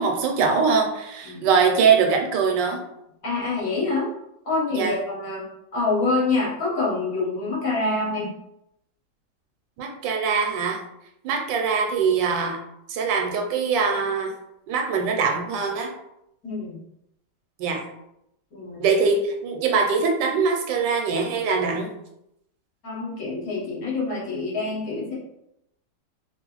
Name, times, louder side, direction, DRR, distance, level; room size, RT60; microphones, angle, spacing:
voice 1, 0.0-2.8 4.7-4.9 9.8-10.8 11.2-12.6 12.9-14.3 14.7-15.9 17.6-17.8 18.8-21.9, right 5 dB, 85° right, 3 dB, 1.3 m, -22 dB
voice 2, 3.2-4.1 4.4-5.4 5.7-8.3 16.4-16.8 18.5-18.9 22.8-25.1, left 3 dB, 55° left, -5 dB, 1.3 m, -26 dB
3.0 x 2.5 x 2.9 m, 0.81 s
omnidirectional pair, 1.9 m